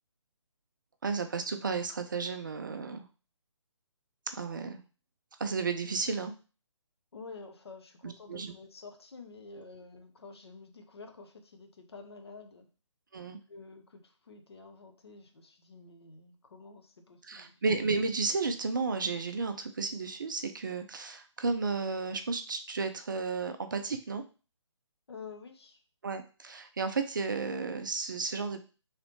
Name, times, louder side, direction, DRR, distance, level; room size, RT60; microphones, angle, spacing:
voice 1, 1.0-3.1 4.3-4.8 5.4-6.3 8.0-8.5 13.1-13.4 17.3-24.2 26.0-28.6, right 4 dB, 40° right, 7 dB, 0.4 m, -33 dB
voice 2, 7.1-12.7 13.5-17.7 25.1-25.8, left 4 dB, 55° left, 5 dB, 0.7 m, -49 dB
3.2 x 2.9 x 3.1 m, 0.34 s
figure-of-eight pair, 140°, 16 cm